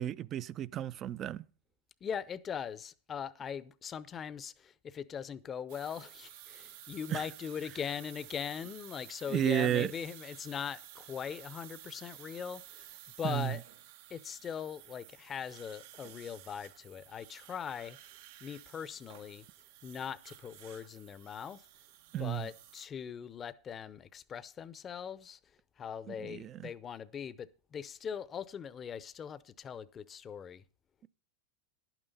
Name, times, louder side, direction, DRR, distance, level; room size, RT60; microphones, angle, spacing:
voice 1, 0.0-1.4 7.1-7.3 9.3-9.9 13.2-13.6 22.1-22.5 26.1-26.7, right 11 dB, 35° right, 0.4 m, -32 dB
voice 2, 2.0-13.6 14.1-18.0 18.4-19.5 19.8-21.6 22.2-25.4 25.8-30.6, left 7 dB, 25° left, 0.7 m, -41 dB
sound 1, 5.7-22.9, right 12 dB, 65° right, 0.7 m, -53 dB
11.0 x 9.0 x 5.4 m
hypercardioid pair, 120°, 0 cm